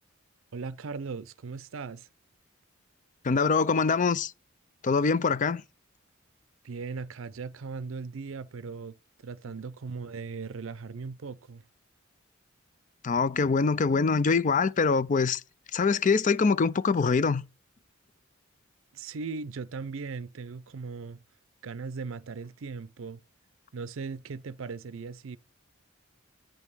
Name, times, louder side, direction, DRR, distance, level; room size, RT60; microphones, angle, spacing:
voice 1, 0.5-2.1 6.6-9.0 9.2-11.6 18.9-21.2 21.6-23.2 23.7-25.4, right 4 dB, 70° right, 0.5 m, -38 dB
voice 2, 3.2-4.3 4.8-5.6 13.0-15.4 15.7-17.4, left 4 dB, 40° left, 0.5 m, -24 dB
9.1 x 5.3 x 6.1 m
head